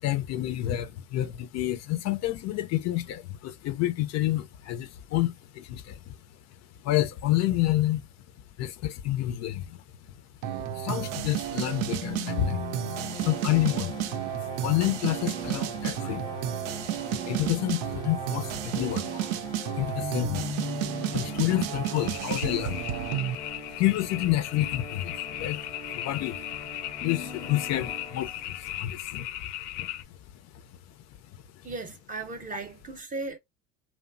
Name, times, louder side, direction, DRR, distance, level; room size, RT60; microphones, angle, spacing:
voice 1, 0.0-6.2 6.8-8.0 8.6-9.8 10.6-16.3 17.1-19.3 19.7-20.6 21.1-23.4 23.7-26.5 27.0-29.5 29.8-29.9 31.3-31.7, left 14 dB, 50° left, 0.5 m, -29 dB
sound 1, 10.4-23.4, right 11 dB, 75° right, 0.5 m, -32 dB
sound 2, 12.0-28.8, left 5 dB, 10° left, 0.6 m, -41 dB
sound 3, 21.3-30.0, left 13 dB, 85° left, 0.7 m, -38 dB
voice 2, 31.6-33.4, right 3 dB, 25° right, 0.7 m, -36 dB
3.1 x 2.1 x 2.5 m
supercardioid pair, 100°, 35 cm